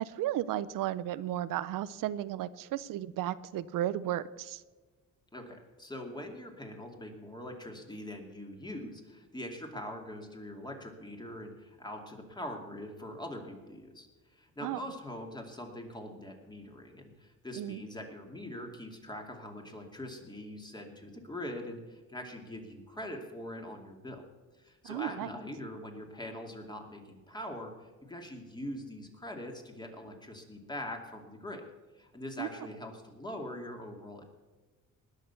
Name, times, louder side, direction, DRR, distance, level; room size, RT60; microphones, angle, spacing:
voice 1, 0.0-4.6 14.6-14.8 17.5-17.8 24.8-25.3 32.4-32.5, right 12 dB, 85° right, 16 dB, 0.6 m, -34 dB
voice 2, 5.3-24.2 24.6-31.6 31.9-34.2, left 1 dB, 15° left, 3 dB, 2.4 m, -43 dB
19.5 x 6.5 x 6.9 m, 1.3 s
cardioid pair, 115°, 32 cm